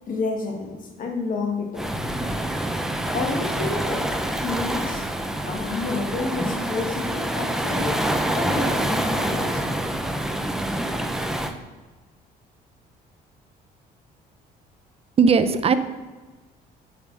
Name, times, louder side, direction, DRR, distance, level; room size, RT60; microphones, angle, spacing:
voice 1, 0.1-2.3 3.1-4.1 4.4-5.1 5.4-8.0 8.4-9.6, left 3 dB, 55° left, 3 dB, 1.8 m, -30 dB
Waves surf, 1.8-11.5, right 1 dB, 5° right, 0.8 m, -26 dB
voice 2, 15.2-15.7, right 5 dB, 35° right, 11 dB, 0.7 m, -17 dB
8.8 x 5.7 x 6.2 m, 1.3 s
cardioid pair, 110°, 17 cm